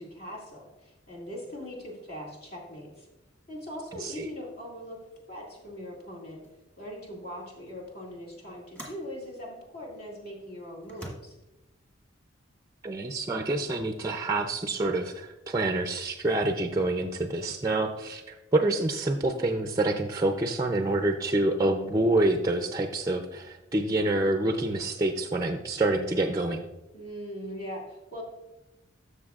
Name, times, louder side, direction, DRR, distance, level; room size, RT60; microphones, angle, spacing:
voice 1, 0.0-3.1 3.5-5.0 5.3-6.4 6.8-11.3 26.9-28.2, equal, 50° left, -3 dB, 2.2 m, -41 dB
sound 1, 6.0-6.1 6.4-6.7 7.7-7.8 8.7-9.1 9.9-10.0 10.8-11.1, right 1 dB, 10° left, 1.4 m, -44 dB
voice 2, 12.8-26.6, right 2 dB, 20° right, 5 dB, 0.4 m, -27 dB
12.5 x 6.5 x 2.4 m, 0.99 s
head